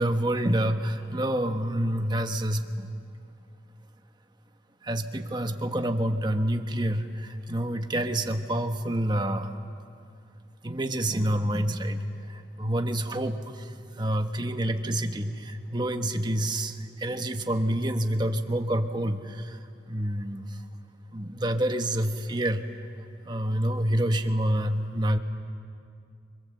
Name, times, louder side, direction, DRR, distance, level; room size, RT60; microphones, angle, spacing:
voice 1, 0.0-2.9 4.8-9.5 10.6-19.6 19.9-20.4 21.1-22.6 23.2-25.2, right 1 dB, 25° right, 6 dB, 1.3 m, -28 dB
28.0 x 25.0 x 7.9 m, 2.4 s
head